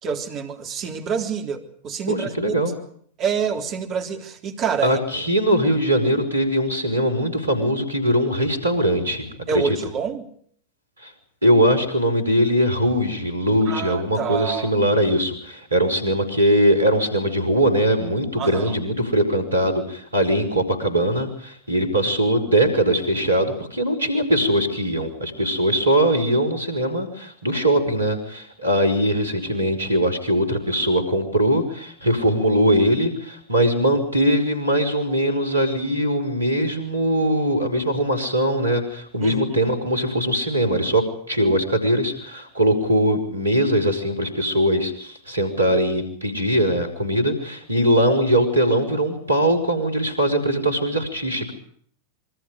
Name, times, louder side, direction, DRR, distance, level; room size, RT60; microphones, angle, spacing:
voice 1, 0.0-2.3 3.2-5.0 9.5-10.3 13.7-14.7 18.4-18.7 39.2-39.4 39.6-39.7, right 6 dB, 35° right, 4 dB, 3.7 m, -27 dB
voice 2, 2.1-2.8 4.8-9.8 11.0-11.1 11.4-51.5, equal, 80° right, 10 dB, 5.4 m, -21 dB
27.0 x 23.5 x 5.2 m, 0.62 s
figure-of-eight pair, 90°, 0 cm